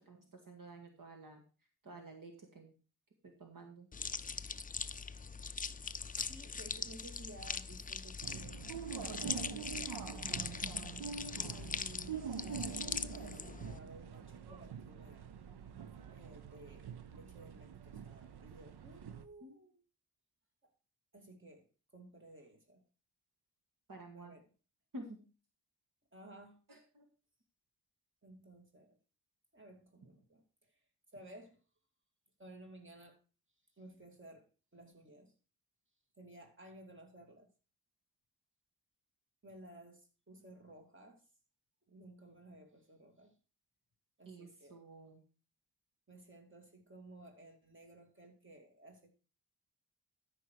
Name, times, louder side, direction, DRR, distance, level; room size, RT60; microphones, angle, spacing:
voice 1, 0.0-1.4 1.8-2.7 3.2-3.9 19.4-19.6 23.9-24.4 24.9-25.2 26.7-27.1 44.3-45.2, right 2 dB, 55° right, 2 dB, 2.0 m, -51 dB
sound 1, 3.9-13.8, left 5 dB, 20° left, 0.4 m, -41 dB
voice 2, 6.2-8.6 9.0-10.9 11.3-15.3 16.0-19.8 20.6-20.7 21.1-21.7 21.9-22.8 24.2-24.5 26.1-26.6 28.2-29.0 29.5-30.8 31.1-31.6 32.4-33.2 33.8-34.5 34.7-35.3 36.2-37.5 39.4-41.2 41.9-43.4 44.2-44.8 46.1-49.2, right 1 dB, 30° right, 3 dB, 2.5 m, -56 dB
sound 2, 8.2-19.2, right 7 dB, 85° right, 0.8 m, -45 dB
13.0 x 5.5 x 4.7 m, 0.35 s
wide cardioid pair, 95°, 38 cm